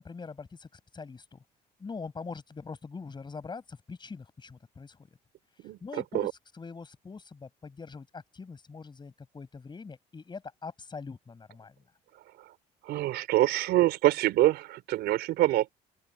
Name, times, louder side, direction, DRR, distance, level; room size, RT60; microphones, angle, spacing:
voice 1, 0.0-1.4 1.8-5.1 5.8-11.8, left 4 dB, 25° left, 6.2 m, -43 dB
voice 2, 5.6-6.3 12.8-15.7, right 15 dB, 80° right, 4.3 m, -25 dB
open air
cardioid pair, 110°, 17 cm